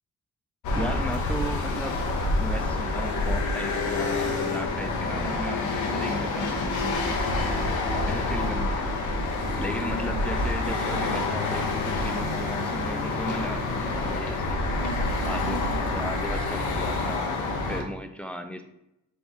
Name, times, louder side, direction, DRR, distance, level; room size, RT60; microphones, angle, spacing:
sound 1, 0.6-17.8, left 2 dB, 80° left, 0.8 m, -27 dB
voice 1, 0.7-2.0 2.4-7.2 8.0-9.0 9.6-14.6 15.2-17.4 17.7-18.6, equal, 5° left, 6 dB, 0.4 m, -36 dB
4.0 x 2.9 x 3.6 m, 0.85 s
cardioid pair, 90°, 30 cm